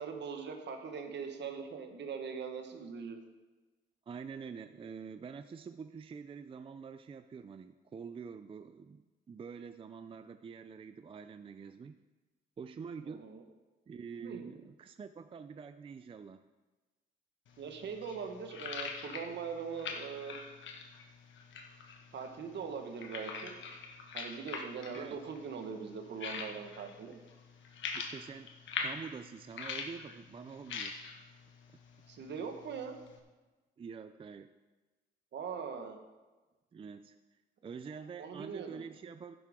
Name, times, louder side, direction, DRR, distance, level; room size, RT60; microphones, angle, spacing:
voice 1, 0.0-3.2 13.0-13.4 14.2-14.5 17.6-20.3 22.1-23.6 24.1-27.2 32.1-33.0 35.3-36.0 37.9-38.8, right 6 dB, 60° right, 5 dB, 1.5 m, -41 dB
voice 2, 4.1-12.0 12.6-13.2 13.9-16.4 24.9-25.2 27.9-28.5 28.8-31.2 33.8-34.6 36.7-39.3, right 6 dB, 25° right, 10 dB, 0.4 m, -46 dB
sound 1, 17.5-33.2, left 5 dB, 70° left, 1.3 m, -44 dB
11.5 x 10.5 x 3.7 m, 1.2 s
cardioid pair, 90°, 20 cm